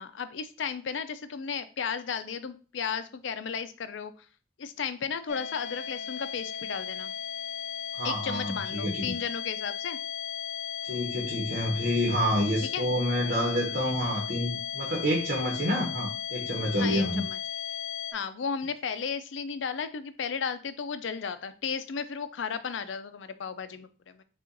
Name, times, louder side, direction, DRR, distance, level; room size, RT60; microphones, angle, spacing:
voice 1, 0.0-4.1 4.6-7.1 8.0-10.0 12.6-12.9 16.8-17.4 18.1-24.2, left 6 dB, 90° left, 11 dB, 0.5 m, -34 dB
sound 1, 5.3-18.1, left 8 dB, 45° left, 0.8 m, -36 dB
voice 2, 7.9-9.1 10.8-17.2, equal, 50° right, -1 dB, 1.0 m, -28 dB
5.4 x 2.4 x 3.9 m, 0.37 s
head